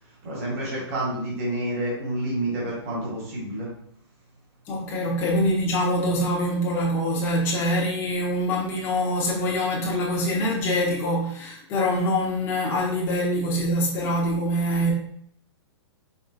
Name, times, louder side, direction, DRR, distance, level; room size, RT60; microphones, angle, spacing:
voice 1, 0.0-3.7, right 1 dB, 30° right, -5 dB, 1.7 m, -29 dB
voice 2, 4.7-14.9, equal, 15° left, -4 dB, 0.9 m, -24 dB
4.8 x 3.5 x 2.5 m, 0.66 s
hypercardioid pair, 170°, 15 cm